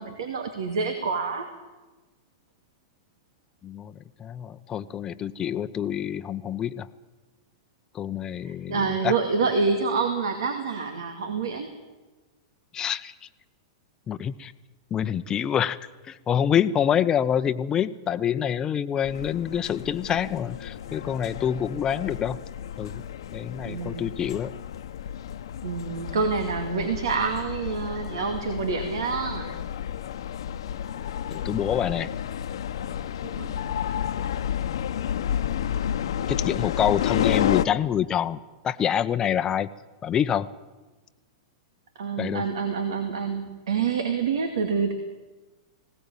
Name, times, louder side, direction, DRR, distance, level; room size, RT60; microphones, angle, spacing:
voice 1, 0.0-1.5 8.5-11.7 23.7-24.1 25.6-29.5 33.2-33.5 42.0-44.9, right 5 dB, 75° right, 7 dB, 2.3 m, -27 dB
voice 2, 3.6-3.9 4.2-6.9 7.9-9.1 12.7-13.1 14.1-14.5 14.9-15.8 16.1-22.4 22.8-23.0 23.3-24.5 31.3-32.1 36.3-39.7 40.0-40.5 42.2-42.4, left 9 dB, 25° left, 10 dB, 0.8 m, -26 dB
sound 1, 19.0-37.7, left 9 dB, 75° left, 1.0 m, -31 dB
20.0 x 17.5 x 9.2 m, 1.2 s
hypercardioid pair, 110°, 3 cm